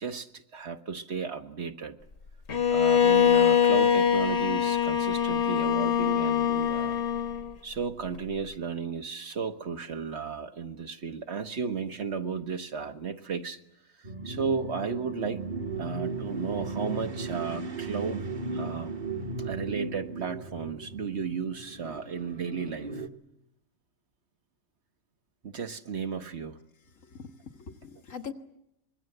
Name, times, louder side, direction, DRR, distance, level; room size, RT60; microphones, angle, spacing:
voice 1, 0.0-2.0 2.7-7.0 7.6-13.6 14.0-15.4 15.8-19.0 19.4-23.0 25.4-26.6, right 5 dB, 60° right, 7 dB, 1.5 m, -34 dB
Bowed string instrument, 2.5-7.5, left 8 dB, 60° left, 1.6 m, -23 dB
sound 1, 14.0-23.1, right 3 dB, 40° right, 1.3 m, -36 dB
voice 2, 27.0-28.3, left 6 dB, 85° left, 3 dB, 2.1 m, -42 dB
25.5 x 22.0 x 7.9 m, 0.84 s
omnidirectional pair, 1.3 m